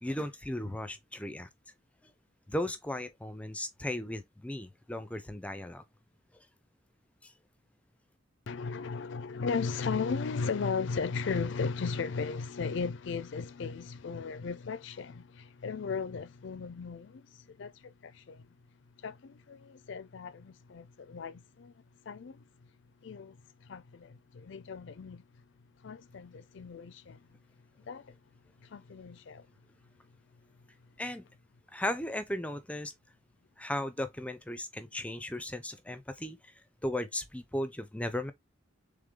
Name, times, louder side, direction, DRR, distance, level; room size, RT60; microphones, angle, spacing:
voice 1, 0.0-1.5 2.5-5.8 7.2-7.3 31.0-31.2 31.7-32.9 33.6-36.5 36.8-38.3, left 1 dB, 5° left, 0.4 m, -36 dB
voice 2, 8.5-18.5 19.0-21.7 22.1-22.4 23.0-25.2 25.8-27.3 27.8-28.2 28.6-29.5, left 5 dB, 60° left, 0.4 m, -36 dB
3.7 x 3.4 x 3.3 m
head